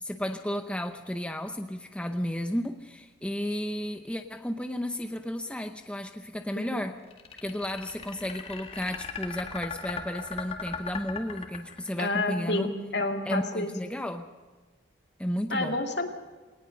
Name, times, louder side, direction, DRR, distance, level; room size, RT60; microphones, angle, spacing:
voice 1, 0.0-7.0 7.4-12.7 13.2-14.3 15.2-15.8, equal, 5° left, 6 dB, 0.7 m, -33 dB
sound 1, 7.1-12.2, left 6 dB, 30° left, 2.2 m, -37 dB
voice 2, 12.0-13.7 15.5-16.1, left 2 dB, 55° left, 5 dB, 2.4 m, -29 dB
21.0 x 19.0 x 6.6 m, 1.4 s
head